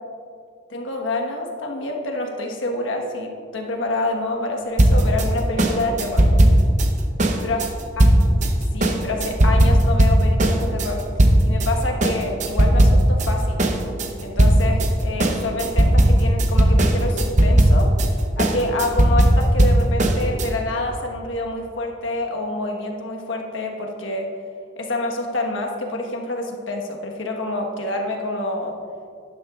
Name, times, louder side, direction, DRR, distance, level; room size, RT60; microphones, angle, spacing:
voice 1, 0.7-6.3 7.4-7.6 8.3-8.4 8.7-11.0 11.4-13.6 14.2-17.9 18.4-24.3 24.8-28.7, left 2 dB, 85° left, 1 dB, 1.4 m, -27 dB
sound 1, 4.8-11.7 12.0-13.3 13.6-20.5, right 1 dB, 40° right, 0.8 m, -16 dB
12.0 x 11.0 x 2.4 m, 2.4 s
head